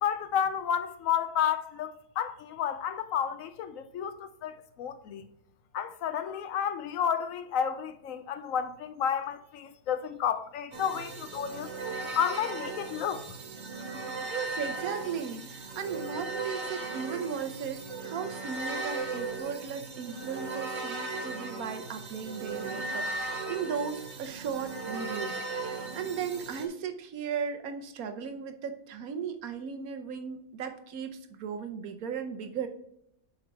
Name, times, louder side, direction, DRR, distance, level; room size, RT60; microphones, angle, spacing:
voice 1, 0.0-5.2 5.7-11.7 12.1-13.4, left 8 dB, 70° left, 0.9 m, -31 dB
sound 1, 10.7-26.7, right 3 dB, 55° right, 1.2 m, -37 dB
voice 2, 14.3-32.7, right 7 dB, 80° right, 1.2 m, -36 dB
7.0 x 4.9 x 3.4 m
omnidirectional pair, 1.5 m